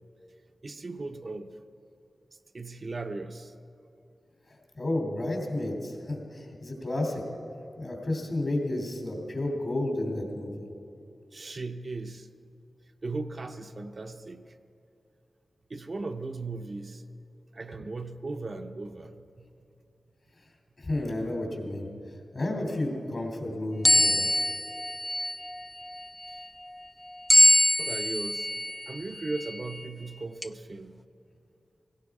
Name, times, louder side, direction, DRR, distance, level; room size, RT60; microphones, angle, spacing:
voice 1, 0.6-1.6 2.5-3.5 11.3-12.3 13.0-14.6 15.7-17.0 17.5-19.5 27.8-28.5 28.9-31.0, right 3 dB, 45° right, 6 dB, 0.6 m, -37 dB
voice 2, 4.5-7.2 7.8-10.7 20.8-21.9 22.3-24.3, left 1 dB, 45° left, 1 dB, 3.0 m, -31 dB
sound 1, 23.8-25.6 27.3-28.7 29.4-29.5 30.4-30.5, left 1 dB, 10° left, 0.4 m, -23 dB
17.0 x 17.0 x 4.8 m, 2.8 s
wide cardioid pair, 100°, 0 cm